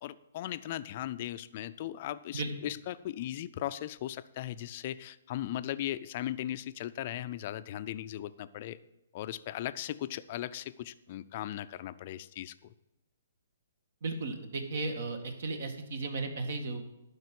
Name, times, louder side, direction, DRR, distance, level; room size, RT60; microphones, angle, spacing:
voice 1, 0.0-8.8 9.1-12.7, left 13 dB, 40° left, 14 dB, 0.5 m, -38 dB
voice 2, 14.0-16.9, right 3 dB, 60° right, 6 dB, 1.8 m, -35 dB
11.5 x 4.7 x 8.3 m, 0.92 s
hypercardioid pair, 155°, 0 cm